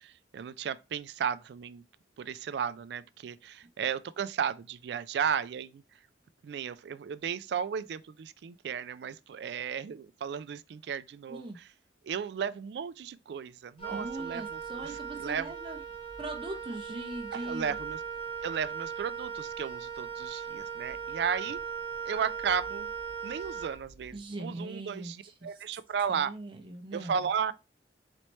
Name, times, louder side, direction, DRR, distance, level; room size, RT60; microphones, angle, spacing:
voice 1, 0.0-1.8 2.2-5.8 6.4-11.6 12.0-14.9 15.2-15.5 17.3-18.0 18.4-21.6 22.1-22.9 23.2-26.3 26.9-27.5, right 7 dB, 70° right, 0.3 m, -34 dB
Wind instrument woodwind instrument, 13.8-24.2, right 6 dB, 30° left, 0.9 m, -39 dB
voice 2, 13.9-15.8 16.2-17.8 24.1-25.6 26.1-27.3, right 2 dB, 30° right, 0.7 m, -41 dB
4.1 x 3.2 x 3.0 m
head